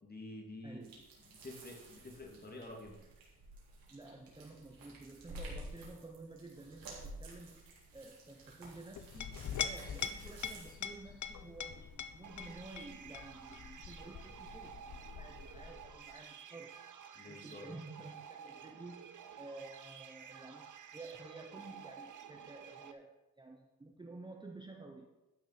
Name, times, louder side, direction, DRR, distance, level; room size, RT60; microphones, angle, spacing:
voice 1, 0.0-0.9 1.3-3.0 17.1-17.7, left 2 dB, 30° left, 0 dB, 2.7 m, -49 dB
voice 2, 0.6-1.1 3.9-16.8 17.3-25.1, right 2 dB, 15° right, 2 dB, 1.0 m, -52 dB
sound 1, 0.8-10.7, right 1 dB, 85° right, 3.7 m, -52 dB
Chink clink, 9.0-16.1, left 8 dB, 60° left, 0.9 m, -43 dB
sound 2, 12.2-22.9, right 8 dB, 60° right, 0.9 m, -52 dB
12.5 x 6.3 x 5.9 m, 0.99 s
cardioid pair, 120°, 34 cm